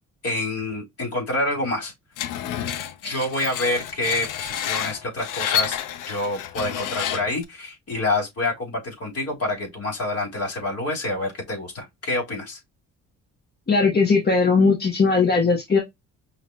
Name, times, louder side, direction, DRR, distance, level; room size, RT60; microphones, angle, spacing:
voice 1, 0.2-1.9 3.0-5.8 6.1-12.6, left 2 dB, 50° left, 3.4 m, -27 dB
Screech, 2.2-7.4, left 10 dB, 85° left, 0.7 m, -29 dB
voice 2, 13.7-15.8, left 4 dB, 30° left, 1.2 m, -19 dB
5.6 x 3.0 x 2.3 m
cardioid pair, 85°, 31 cm